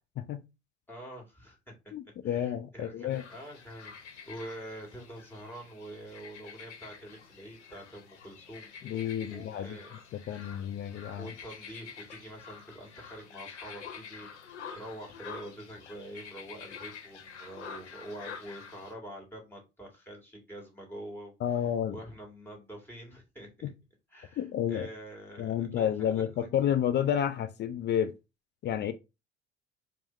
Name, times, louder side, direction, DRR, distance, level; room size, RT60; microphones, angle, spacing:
voice 1, 0.9-1.7 2.2-9.9 11.2-23.5 24.1-26.5, right 1 dB, 5° left, 1.9 m, -46 dB
voice 2, 1.9-3.2 8.8-9.8 10.1-11.3 21.4-22.0 23.6-23.7 24.4-24.9 25.4-28.2 28.6-28.9, left 9 dB, 30° left, 0.4 m, -30 dB
sound 1, 3.1-18.9, left 6 dB, 75° left, 0.7 m, -48 dB
4.6 x 2.0 x 4.3 m
figure-of-eight pair, 60°, 35 cm